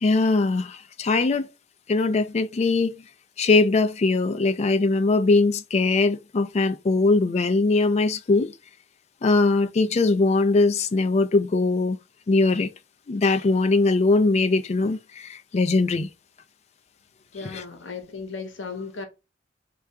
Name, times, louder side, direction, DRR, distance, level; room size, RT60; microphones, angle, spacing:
voice 1, 0.0-1.5 1.9-3.0 3.4-8.5 9.2-12.0 12.3-12.7 13.1-16.1 17.4-17.6, left 3 dB, 35° left, 0.4 m, -21 dB
voice 2, 17.3-19.1, left 4 dB, 85° left, 0.8 m, -35 dB
3.7 x 2.3 x 4.3 m
head